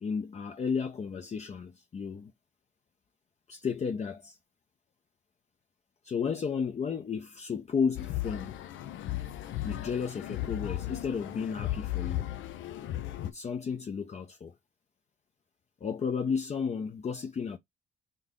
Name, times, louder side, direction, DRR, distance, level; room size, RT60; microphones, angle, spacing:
voice 1, 0.0-2.3 3.5-4.4 6.0-8.6 9.6-12.3 13.2-14.5 15.8-17.6, left 6 dB, 35° left, 0.6 m, -33 dB
sound 1, 7.9-13.3, left 14 dB, 80° left, 0.6 m, -35 dB
3.9 x 2.6 x 3.6 m
cardioid pair, 90°, 20 cm